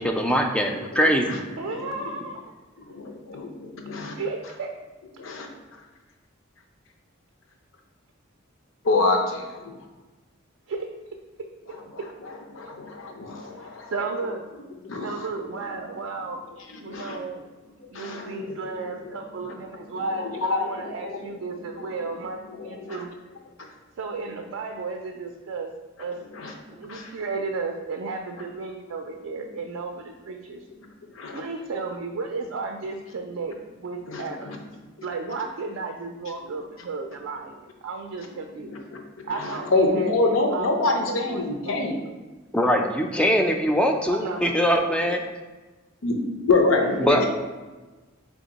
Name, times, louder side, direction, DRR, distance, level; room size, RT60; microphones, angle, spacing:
voice 1, 0.0-1.4 42.5-45.2 47.0-47.2, equal, 5° left, 3 dB, 0.3 m, -22 dB
voice 2, 0.9-1.4 1.7-2.1 2.9-4.2 5.2-5.5 8.8-9.7 12.2-13.9 14.8-15.2 16.7-17.2 17.9-21.2 21.7-21.8 22.1-22.2 22.5-23.0 26.3-26.5 26.9-27.1 31.2-31.4 34.1-34.6 38.6-42.0 46.0-47.3, left 3 dB, 80° left, 2 dB, 0.7 m, -27 dB
voice 3, 1.6-2.5 4.1-4.7 10.7-10.9 13.9-14.4 15.0-16.4 16.8-17.5 17.9-23.1 24.0-25.7 26.0-26.2 26.7-30.6 31.3-34.6 35.0-38.7 39.3-41.8 44.1-45.2 47.0-47.3, right 4 dB, 75° right, 3 dB, 0.4 m, -34 dB
3.6 x 3.5 x 3.9 m, 1.2 s
head